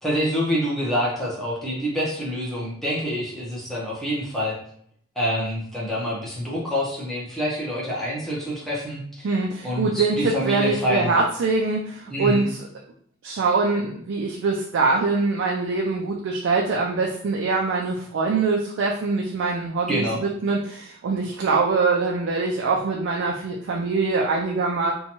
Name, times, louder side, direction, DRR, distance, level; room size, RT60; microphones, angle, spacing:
voice 1, 0.0-4.6 5.2-9.3 9.6-11.1 12.1-12.4 19.9-20.2, equal, ahead, -6 dB, 0.6 m, -26 dB
voice 2, 9.2-12.6 13.2-24.9, right 3 dB, 70° right, -1 dB, 0.4 m, -23 dB
2.7 x 2.2 x 2.8 m, 0.64 s
head